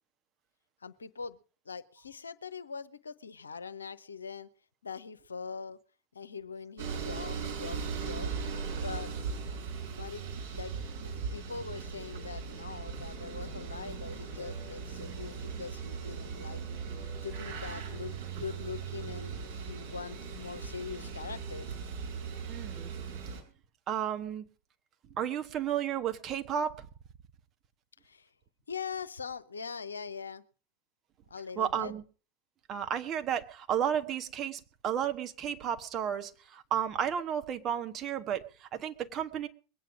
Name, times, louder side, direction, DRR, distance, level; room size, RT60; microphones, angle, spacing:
voice 1, 0.8-1.4 1.6-4.5 4.8-5.8 6.1-8.3 8.7-9.1 9.9-10.7 11.0-16.6 17.2-21.7 28.0-28.3 28.7-30.4 31.3-31.9, left 5 dB, 80° left, 13 dB, 0.9 m, -42 dB
sound 1, 6.8-23.4, right 5 dB, 60° right, 6.1 m, -38 dB
voice 2, 22.5-22.9 23.9-24.4 25.1-26.9 31.6-32.0 32.7-39.5, right 9 dB, 35° right, 7 dB, 1.5 m, -33 dB
22.0 x 9.3 x 5.0 m, 0.38 s
figure-of-eight pair, 85°, 0 cm